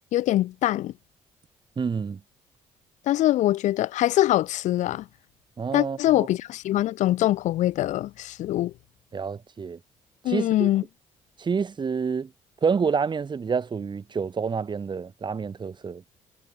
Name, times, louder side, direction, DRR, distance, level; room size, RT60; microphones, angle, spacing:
voice 1, 0.1-0.9 3.1-5.0 5.7-8.7 10.2-10.8, left 14 dB, 80° left, 1.8 m, -23 dB
voice 2, 1.8-2.2 5.6-6.3 9.1-9.8 10.3-10.7 11.4-12.3 12.6-16.0, right 5 dB, 40° right, 7.1 m, -28 dB
cardioid pair, 85°, 12 cm